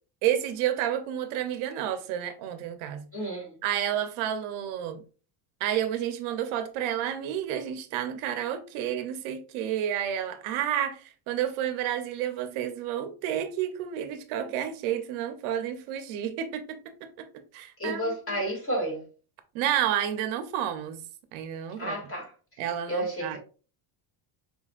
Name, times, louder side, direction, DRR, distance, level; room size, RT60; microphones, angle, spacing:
voice 1, 0.2-3.1 3.6-5.0 5.6-16.8 17.2-17.3 17.5-18.4 19.5-21.0 21.3-22.0 22.6-23.4, right 10 dB, 75° right, 0.8 m, -30 dB
voice 2, 3.1-3.6 17.8-19.1 21.8-22.6 22.9-23.4, right 1 dB, 25° left, 2.4 m, -31 dB
6.3 x 3.3 x 2.4 m
cardioid pair, 130°, 49 cm